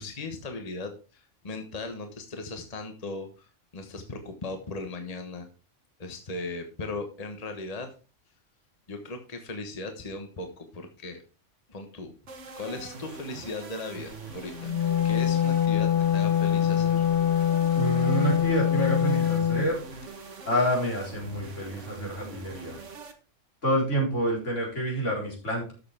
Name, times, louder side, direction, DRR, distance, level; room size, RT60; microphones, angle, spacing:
voice 1, 0.0-5.5 6.0-7.9 8.9-11.2 11.7-12.1 12.6-17.0, left 3 dB, 30° left, 5 dB, 1.3 m, -38 dB
sound 1, 12.3-23.1, right 4 dB, 75° right, 1.7 m, -43 dB
Wind instrument woodwind instrument, 14.5-19.7, left 9 dB, 60° left, 0.8 m, -24 dB
voice 2, 17.8-19.8 20.4-22.8 23.6-25.7, right 1 dB, 75° left, -3 dB, 4.7 m, -28 dB
13.0 x 6.8 x 3.5 m, 0.34 s
omnidirectional pair, 1.3 m